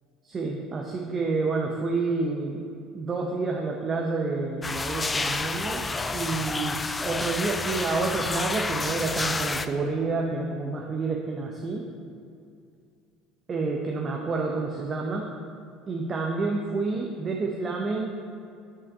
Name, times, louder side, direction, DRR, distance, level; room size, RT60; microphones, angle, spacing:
voice 1, 0.2-2.6 2.9-11.8 13.5-15.3 15.9-18.2, right 3 dB, 35° right, 1 dB, 0.7 m, -29 dB
sound 1, 4.6-9.7, left 3 dB, 20° left, 0.3 m, -29 dB
5.9 x 4.7 x 5.3 m, 2.4 s
hypercardioid pair, 65°, 0 cm